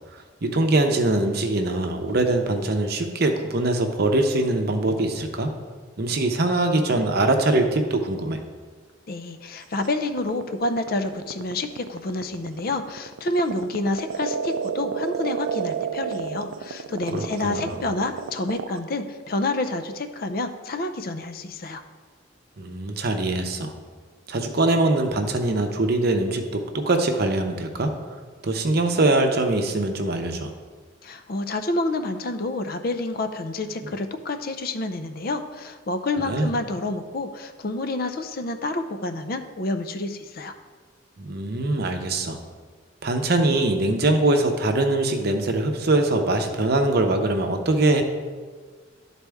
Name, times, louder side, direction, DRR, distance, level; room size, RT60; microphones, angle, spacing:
voice 1, 0.1-5.5 6.0-8.4 17.1-17.8 22.6-23.7 24.3-27.9 28.4-30.5 36.2-36.5 41.2-42.4 43.0-48.0, right 2 dB, 55° right, 5 dB, 0.7 m, -22 dB
voice 2, 9.1-21.8 31.0-40.5, left 2 dB, 50° left, 8 dB, 0.5 m, -28 dB
sound 1, 9.8-18.8, right 7 dB, 85° right, 0.4 m, -30 dB
11.5 x 4.1 x 3.5 m, 1.5 s
head